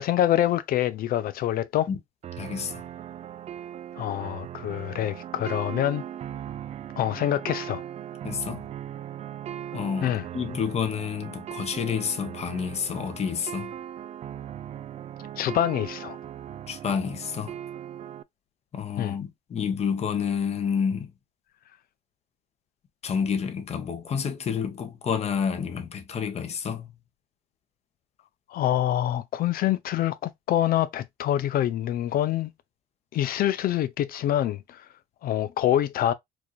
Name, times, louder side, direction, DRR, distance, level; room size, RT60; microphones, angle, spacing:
voice 1, 0.0-1.9 4.0-6.0 7.0-7.8 10.0-10.2 15.4-16.2 19.0-19.2 28.5-32.5 33.1-34.9 35.2-36.1, left 12 dB, 60° left, 0.5 m, -26 dB
sound 1, 2.2-18.2, right 10 dB, 40° right, 0.4 m, -39 dB
voice 2, 2.4-2.8 8.2-8.7 9.7-13.7 16.7-17.5 18.7-21.1 23.0-26.9, left 7 dB, 40° left, 1.1 m, -29 dB
4.7 x 2.6 x 2.3 m
cardioid pair, 110°, 17 cm